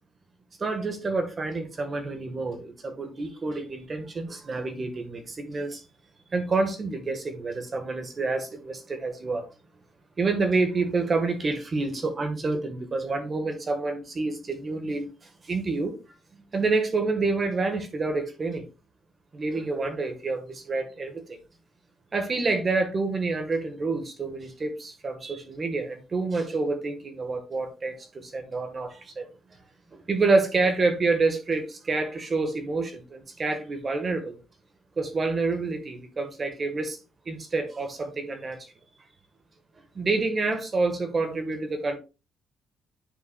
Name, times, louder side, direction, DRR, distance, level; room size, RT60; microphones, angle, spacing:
voice 1, 0.6-5.8 6.3-9.5 10.2-15.1 15.4-15.9 16.5-18.7 19.3-21.4 22.1-29.3 29.9-34.4 35.0-37.0 37.2-38.7 39.9-42.0, right 3 dB, 35° right, 1.4 m, -28 dB
10.5 x 4.5 x 2.3 m
cardioid pair, 90°, 0 cm